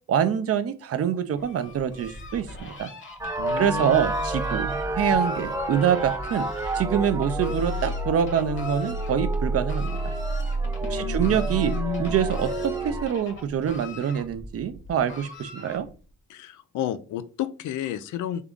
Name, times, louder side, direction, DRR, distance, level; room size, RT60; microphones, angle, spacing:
voice 1, 0.1-2.9 3.6-6.5 6.7-10.0 10.9-11.7 12.0-15.9, right 8 dB, 50° right, 11 dB, 0.6 m, -25 dB
Fowl, 1.4-16.1, left 3 dB, 40° left, 1.3 m, -43 dB
sound 1, 3.2-13.1, right 2 dB, 10° right, 0.4 m, -28 dB
voice 2, 3.4-4.1 10.8-12.2 16.3-18.4, left 10 dB, 80° left, 13 dB, 0.5 m, -32 dB
3.7 x 3.5 x 3.6 m, 0.36 s
cardioid pair, 90°, 30 cm